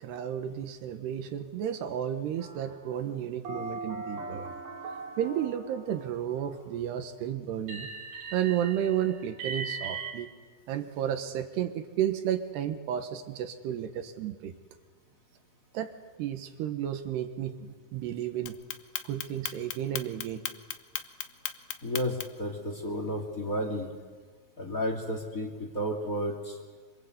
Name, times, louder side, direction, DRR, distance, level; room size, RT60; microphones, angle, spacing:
voice 1, 0.0-4.6 5.2-7.9 8.3-10.3 10.7-14.5 15.7-15.9 16.2-18.6 19.0-20.4, right 10 dB, 70° right, 8 dB, 3.1 m, -32 dB
sound 1, 2.4-2.9 3.4-6.5 7.7-10.1, right 4 dB, 50° right, 3.5 m, -39 dB
Clock, 18.5-22.5, left 12 dB, 80° left, 2.0 m, -35 dB
voice 2, 21.8-23.9 24.6-26.5, equal, 20° left, 2 dB, 2.5 m, -32 dB
26.5 x 25.5 x 8.2 m, 1.5 s
omnidirectional pair, 5.4 m